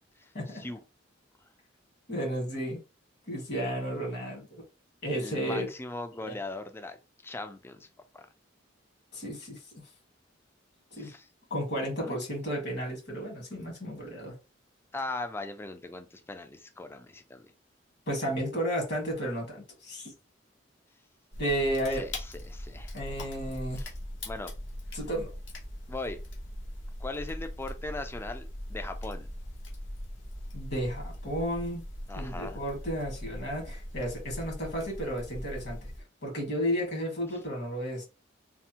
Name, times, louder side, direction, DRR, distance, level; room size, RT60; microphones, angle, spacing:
voice 1, 0.2-0.8 5.2-7.0 7.2-7.9 8.1-8.2 11.0-11.3 12.0-12.2 14.9-17.5 21.9-23.0 23.7-23.9 24.2-24.5 24.9-25.0 25.9-26.2 27.0-29.3 32.1-32.6, left 2 dB, 10° left, 0.3 m, -39 dB
voice 2, 2.1-2.8 3.3-4.6 5.0-5.7 6.3-6.4 9.1-9.8 10.9-11.1 11.5-14.3 18.1-20.1 21.4-22.0 22.9-23.8 24.9-25.3 30.5-31.8 32.1-35.9 36.2-38.0, equal, 60° left, 1.5 m, -33 dB
sound 1, 21.3-36.0, left 1 dB, 75° left, 0.9 m, -40 dB
3.3 x 2.1 x 2.8 m
head